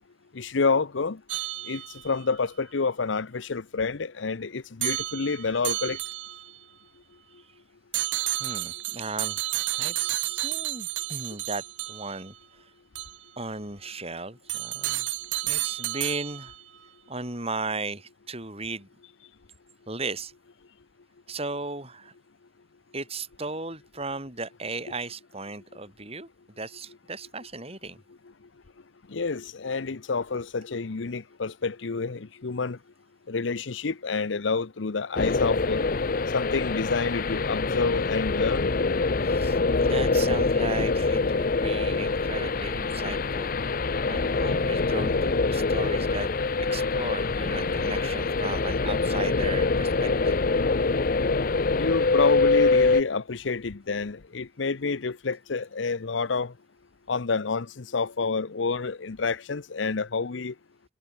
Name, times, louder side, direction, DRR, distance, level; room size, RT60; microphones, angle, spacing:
voice 1, 0.3-1.2 1.7-6.0 29.1-32.8 33.3-35.8 36.3-38.7 51.7-56.5 57.1-60.5, left 4 dB, 80° left, 0.8 m, -28 dB
sound 1, 1.3-2.2 4.8-6.6 7.9-12.3 13.0-13.2 14.5-16.6, right 16 dB, 80° right, 0.8 m, -31 dB
voice 2, 8.4-9.4 9.7-12.7 13.4-15.1 15.4-16.5 17.1-18.9 19.9-20.3 21.3-22.1 22.9-26.3 26.6-28.0 39.2-43.5 44.1-46.3 46.7-50.4, right 3 dB, 30° right, 7.9 m, -36 dB
sound 2, 35.2-53.0, left 3 dB, 50° left, 0.7 m, -25 dB
head